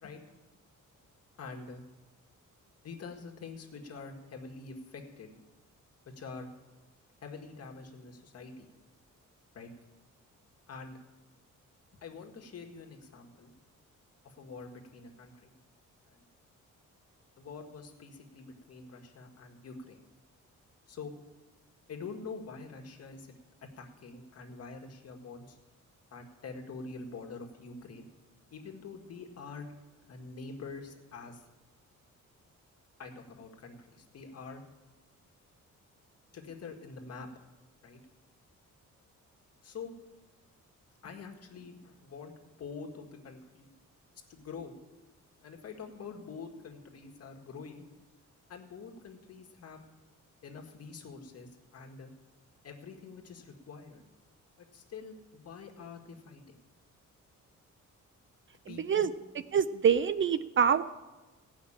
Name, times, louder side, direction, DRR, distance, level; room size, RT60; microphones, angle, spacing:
voice 1, 1.4-1.8 2.8-5.4 6.2-6.5 7.2-8.7 9.5-9.7 10.7-11.0 12.0-13.5 14.2-15.5 16.1-16.2 17.4-20.0 20.9-21.1 21.9-23.3 23.8-25.6 26.1-28.1 28.5-29.8 30.1-31.4 33.0-34.6 36.3-37.3 37.8-38.0 39.6-39.9 41.0-42.3 42.6-43.7 44.3-44.7 45.4-47.8 48.5-49.8 50.4-52.1 52.6-54.0 54.6-56.6 58.7-59.1, left 4 dB, 50° left, 2 dB, 1.8 m, -46 dB
voice 2, 58.7-59.1 59.5-60.8, right 7 dB, 40° right, 14 dB, 0.4 m, -26 dB
17.0 x 5.8 x 8.7 m, 1.2 s
cardioid pair, 150°, 31 cm